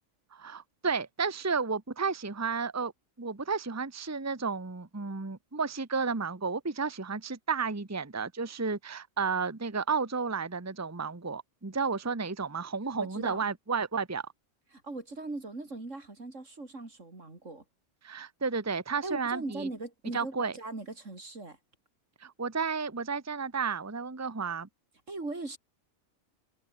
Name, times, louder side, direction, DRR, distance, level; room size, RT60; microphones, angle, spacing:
voice 1, 0.3-2.9 3.2-14.3 18.0-19.7 20.1-20.5 22.2-24.7, right 5 dB, 15° right, 1.0 m, -32 dB
voice 2, 13.0-13.5 14.7-17.6 19.0-21.6 25.1-25.6, right 2 dB, 80° right, 4.5 m, -39 dB
omnidirectional pair, 1.3 m